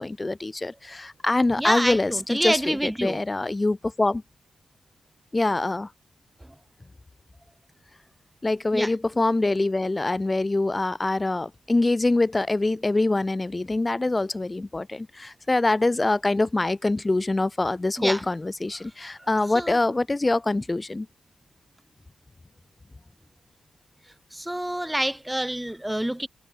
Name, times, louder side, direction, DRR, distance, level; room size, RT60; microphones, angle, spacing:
voice 1, 0.0-4.2 5.3-5.9 8.4-21.1, left 2 dB, 15° left, 1.0 m, -24 dB
voice 2, 1.6-3.2 8.7-8.9 18.0-18.2 19.2-19.3 19.5-19.8 24.3-26.3, right 1 dB, 5° right, 4.3 m, -27 dB
wide cardioid pair, 135°, 0 cm